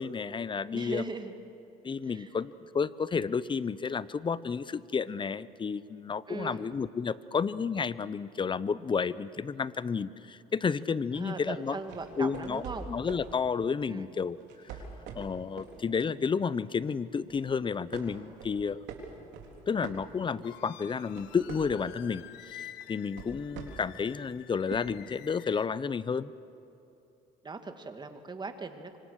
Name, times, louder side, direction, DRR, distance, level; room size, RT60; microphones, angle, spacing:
voice 1, 0.0-1.1 1.8-11.8 12.2-14.4 14.6-14.8 15.1-18.8 19.7-26.3, left 5 dB, 30° left, 17 dB, 0.7 m, -31 dB
voice 2, 0.7-1.3 2.1-2.3 6.3-6.7 11.1-12.9 13.9-14.1 27.4-29.0, right 3 dB, 25° right, 7 dB, 2.2 m, -39 dB
sound 1, 11.7-13.3 14.4-15.8 16.2-16.4 16.9-17.5 17.9-20.5 20.9-22.0 22.8-24.0 24.7-24.8, right 6 dB, 80° right, 3.6 m, -44 dB
sound 2, 20.4-25.7, left 12 dB, 75° left, 0.9 m, -49 dB
26.0 x 25.0 x 6.5 m, 2.9 s
cardioid pair, 95°, 18 cm